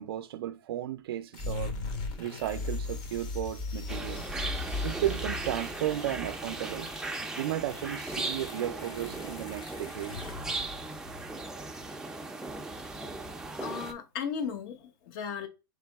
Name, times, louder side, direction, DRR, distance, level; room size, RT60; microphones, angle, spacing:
voice 1, 0.0-1.7 2.2-4.2 4.8-6.9 7.4-10.2 13.0-13.1, right 12 dB, 80° right, 0.4 m, -34 dB
sound 1, 1.3-11.3, left 3 dB, 35° left, 1.1 m, -39 dB
sound 2, 3.9-13.9, right 2 dB, 5° right, 0.5 m, -38 dB
voice 2, 13.6-15.5, left 7 dB, 55° left, 1.1 m, -36 dB
3.8 x 3.4 x 3.4 m
supercardioid pair, 140°, 12 cm